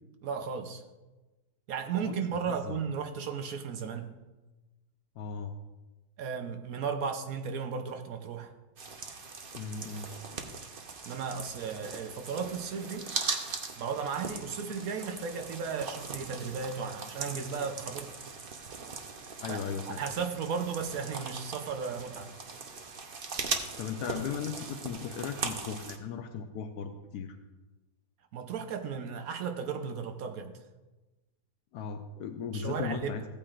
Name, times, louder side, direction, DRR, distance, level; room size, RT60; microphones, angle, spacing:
voice 1, 0.2-0.8 1.7-4.2 6.2-8.5 11.0-13.1 13.8-18.1 19.5-19.6 20.0-22.3 28.3-30.5 32.5-33.2, right 6 dB, 65° right, 7 dB, 1.2 m, -35 dB
voice 2, 5.2-5.5 9.5-10.1 19.4-20.0 23.8-27.4 31.7-33.3, left 7 dB, 85° left, 5 dB, 1.3 m, -37 dB
sound 1, 8.8-26.0, right 4 dB, 45° right, 0.8 m, -40 dB
15.5 x 8.7 x 2.5 m, 1.1 s
omnidirectional pair, 1.7 m